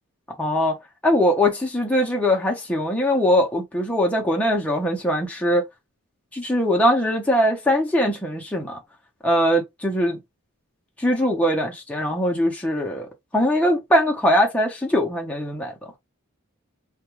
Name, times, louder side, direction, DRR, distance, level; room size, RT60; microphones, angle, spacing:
voice 1, 0.4-0.8 1.0-5.6 6.3-8.8 9.2-10.2 11.0-13.1 13.3-15.7, equal, 5° left, 0.5 m, -21 dB
2.2 x 2.1 x 3.0 m
head